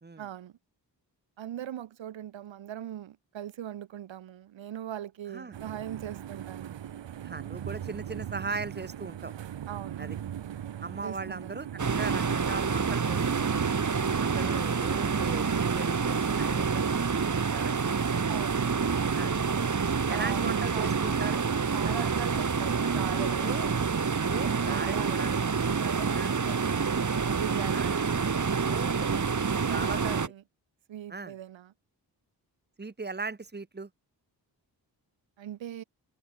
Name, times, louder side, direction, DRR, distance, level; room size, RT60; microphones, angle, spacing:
voice 1, 0.2-0.5 1.4-6.8 9.7-10.2 11.0-11.6 18.3-18.6 20.1-21.0 21.7-23.6 24.6-25.1 25.7-26.8 27.3-28.0 29.6-30.4 30.9-31.7 35.4-35.8, right 11 dB, 90° right, 2.0 m, -40 dB
sound 1, 5.5-15.7, right 10 dB, 75° right, 1.2 m, -40 dB
voice 2, 7.2-9.3 10.0-10.2 10.8-13.5 14.2-17.7 19.1-19.3 20.1-21.4 21.8-22.1 23.4-23.8 24.2-25.5 26.1-26.4 27.7-28.0 28.7-29.1 29.7-30.2 31.1-31.3 32.8-33.9, right 3 dB, 20° right, 1.6 m, -38 dB
sound 2, 11.8-30.3, right 5 dB, 40° right, 1.6 m, -28 dB
supercardioid pair, 40°, 44 cm